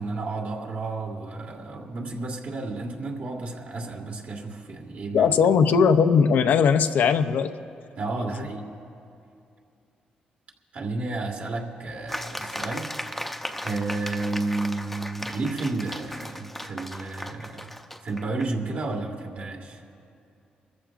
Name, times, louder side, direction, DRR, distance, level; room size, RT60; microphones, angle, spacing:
voice 1, 0.0-5.3 8.0-8.7 10.7-12.9 13.3-17.8 18.0-19.8, right 3 dB, 60° right, 0 dB, 1.8 m, -32 dB
voice 2, 5.1-7.5, left 6 dB, 80° left, 9 dB, 0.6 m, -19 dB
sound 1, 12.1-18.5, left 1 dB, 5° left, 0.7 m, -36 dB
27.0 x 14.0 x 2.5 m, 2.6 s
cardioid pair, 85°, 3 cm